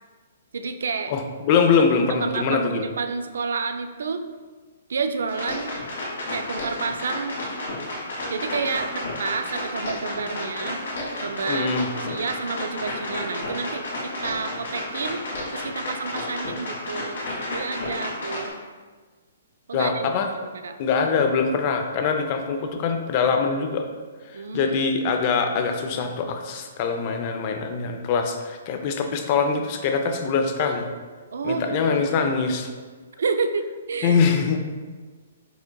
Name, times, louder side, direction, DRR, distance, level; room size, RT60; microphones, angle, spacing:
voice 1, 0.5-1.1 1.8-4.2 4.9-5.8 6.3-7.4 8.3-10.8 11.2-13.9 14.2-15.2 15.5-17.2 17.5-18.5 19.7-20.1 20.6-20.8 24.3-24.8 31.3-32.4 33.2-34.2, right 4 dB, 70° right, 8 dB, 0.3 m, -29 dB
voice 2, 1.1-2.9 11.5-11.9 19.7-20.3 20.8-23.8 24.5-30.9 31.4-32.7 34.0-34.6, left 5 dB, 40° left, 5 dB, 0.5 m, -23 dB
sound 1, 5.3-18.5, left 1 dB, 80° left, 1.4 m, -31 dB
4.9 x 3.7 x 2.2 m, 1.4 s
hypercardioid pair, 130°, 0 cm